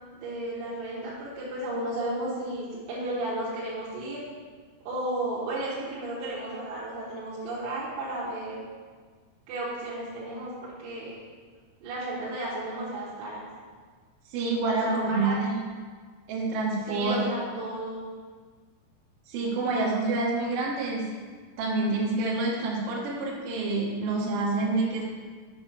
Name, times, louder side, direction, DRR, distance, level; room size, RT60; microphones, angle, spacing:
voice 1, 0.1-4.2 4.8-8.6 9.5-11.1 11.8-13.5 14.6-15.4 16.9-18.1, right 1 dB, 85° right, -8 dB, 4.1 m, -33 dB
voice 2, 14.3-15.8 16.3-17.2 19.3-21.1 21.6-25.0, right 3 dB, 65° right, -3 dB, 2.2 m, -27 dB
8.1 x 7.1 x 4.4 m, 1.5 s
omnidirectional pair, 5.9 m